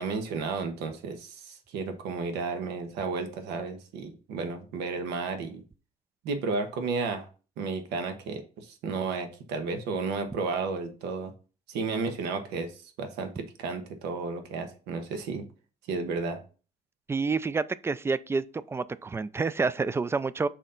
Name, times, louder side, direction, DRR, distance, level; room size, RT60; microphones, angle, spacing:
voice 1, 0.0-5.6 6.2-7.3 7.6-11.3 11.7-12.7 13.0-15.4 15.9-16.4, right 4 dB, 90° right, 1.2 m, -32 dB
voice 2, 17.1-20.5, right 4 dB, 15° right, 0.3 m, -28 dB
6.3 x 4.2 x 3.8 m
cardioid pair, 110°, 17 cm